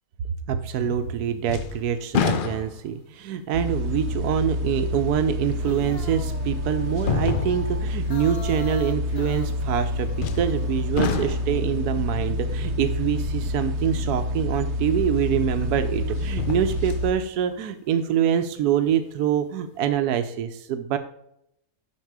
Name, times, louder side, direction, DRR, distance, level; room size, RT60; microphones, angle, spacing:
voice 1, 0.5-21.0, right 9 dB, 90° right, 9 dB, 1.2 m, -25 dB
sound 1, 0.8-1.2 1.5-3.0 3.7-3.8 5.6-5.7 7.0-7.9 10.2-10.6 11.0-11.7 14.7-14.8 16.2-17.1 17.5-17.6, left 6 dB, 70° left, 0.5 m, -28 dB
sound 2, 3.5-17.1, left 1 dB, 60° right, 0.8 m, -28 dB
sound 3, 5.5-11.0, left 3 dB, 50° left, 0.9 m, -42 dB
7.2 x 6.0 x 4.7 m, 0.75 s
omnidirectional pair, 1.6 m